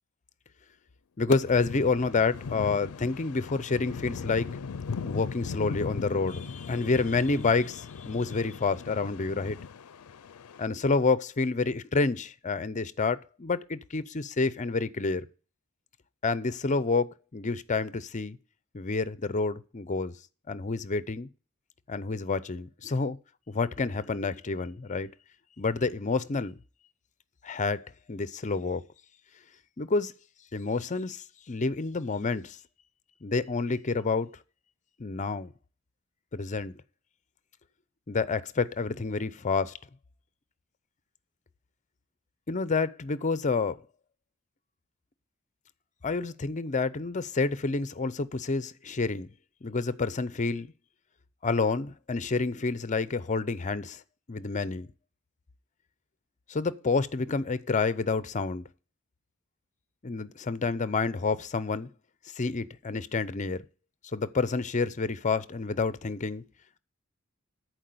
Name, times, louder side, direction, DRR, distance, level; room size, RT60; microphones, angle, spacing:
voice 1, 1.2-4.6 5.0-9.6 10.6-15.3 16.2-18.4 18.7-20.1 20.5-21.3 21.9-23.2 23.5-25.1 25.6-26.5 27.4-28.8 29.8-30.1 30.5-32.6 33.2-34.3 35.0-35.5 36.3-36.7 38.1-39.7 42.5-43.8 46.0-49.3 49.6-50.7 51.4-54.0 54.3-54.9 56.5-58.6 60.0-61.9 62.4-63.6 64.1-66.4, left 4 dB, 35° left, 0.6 m, -29 dB
sound 1, 1.3-10.7, left 5 dB, 80° left, 0.5 m, -38 dB
10.5 x 4.7 x 7.8 m
head